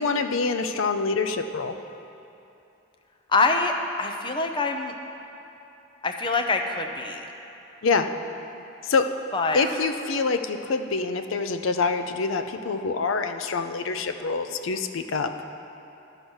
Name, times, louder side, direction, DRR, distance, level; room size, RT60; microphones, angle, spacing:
voice 1, 0.0-1.8 7.8-8.1 8.8-9.1 9.5-15.3, left 4 dB, 80° left, 8 dB, 0.5 m, -26 dB
voice 2, 3.3-5.0 6.0-7.3 9.3-9.6, left 3 dB, 25° left, 4 dB, 0.5 m, -25 dB
11.5 x 4.9 x 6.3 m, 2.8 s
head